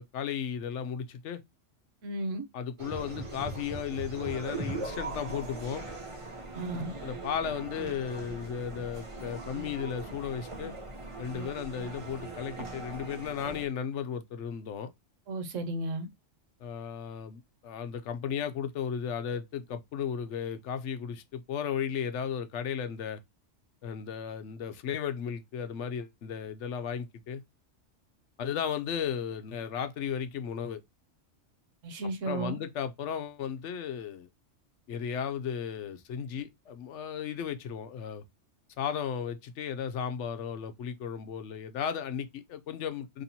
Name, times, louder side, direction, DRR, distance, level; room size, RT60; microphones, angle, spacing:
voice 1, 0.0-1.4 2.5-5.9 7.0-10.7 11.2-14.9 16.6-23.2 23.8-27.4 28.4-30.8 32.0-34.3 34.9-38.2 38.8-43.2, left 8 dB, 75° left, 0.9 m, -35 dB
voice 2, 2.0-2.4 6.5-6.9 15.3-16.1 31.8-32.6, right 2 dB, 90° right, 1.2 m, -34 dB
sound 1, 2.8-13.7, right 3 dB, 30° right, 0.7 m, -40 dB
4.1 x 3.0 x 2.7 m
omnidirectional pair, 1.3 m